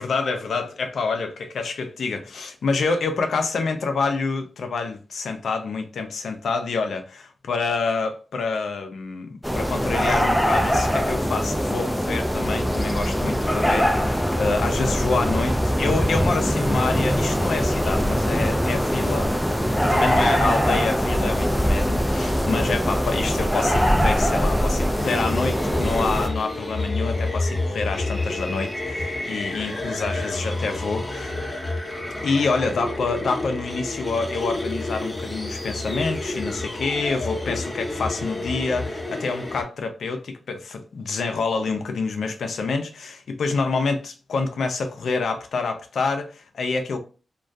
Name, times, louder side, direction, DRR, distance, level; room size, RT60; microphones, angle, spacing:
voice 1, 0.0-19.3 19.9-31.3 32.2-47.0, left 4 dB, 80° left, 0.4 m, -27 dB
sound 1, 9.4-26.3, equal, ahead, 0.4 m, -22 dB
sound 2, 25.0-39.6, left 2 dB, 20° left, 0.8 m, -29 dB
2.2 x 2.2 x 2.5 m
cardioid pair, 60°, 0 cm